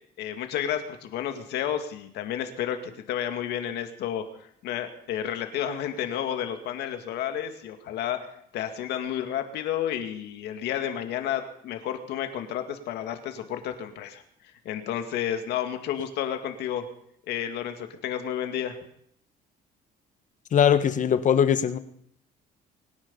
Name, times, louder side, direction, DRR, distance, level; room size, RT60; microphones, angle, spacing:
voice 1, 0.2-14.2 14.6-16.9 17.3-18.8, left 10 dB, 80° left, 7 dB, 2.2 m, -31 dB
voice 2, 20.5-21.8, left 8 dB, 50° left, 13 dB, 1.2 m, -21 dB
24.5 x 10.5 x 5.6 m, 0.71 s
cardioid pair, 110°, 17 cm